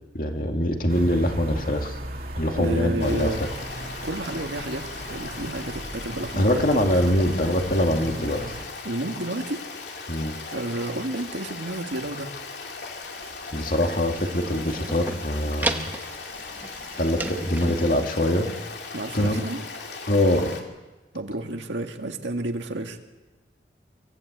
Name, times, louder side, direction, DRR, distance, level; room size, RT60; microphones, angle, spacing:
voice 1, 0.1-2.0 2.4-3.3 6.4-8.4 10.1-10.4 13.5-15.9 16.9-18.5 19.1-19.4 20.1-20.6, left 1 dB, 50° left, 3 dB, 2.3 m, -23 dB
sound 1, 0.9-8.6, right 1 dB, 50° right, 2.4 m, -37 dB
voice 2, 2.6-3.4 4.0-7.2 8.8-9.6 10.5-12.3 18.9-19.6 21.1-23.0, right 1 dB, 75° right, 4 dB, 1.8 m, -31 dB
Stream, 3.0-20.6, left 4 dB, 65° left, 2.6 m, -38 dB
sound 2, 13.0-18.0, right 2 dB, 10° right, 1.0 m, -35 dB
25.0 x 15.5 x 8.2 m, 1.2 s
head